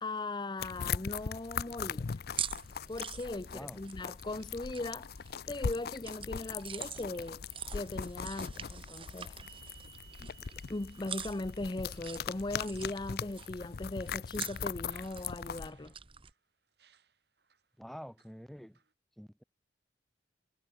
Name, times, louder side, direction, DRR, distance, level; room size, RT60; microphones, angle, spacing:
voice 1, 0.0-2.2 2.9-7.4 7.7-9.4 10.2-10.3 10.7-16.0, left 2 dB, 25° left, 0.7 m, -39 dB
sound 1, 0.6-15.7, left 6 dB, 60° left, 0.5 m, -40 dB
sound 2, 2.2-16.3, right 8 dB, 30° right, 1.3 m, -46 dB
sound 3, 9.4-16.4 16.8-17.6 18.2-18.9, right 9 dB, 70° right, 6.2 m, -62 dB
voice 2, 17.8-18.8 19.2-19.4, equal, ahead, 1.6 m, -47 dB
head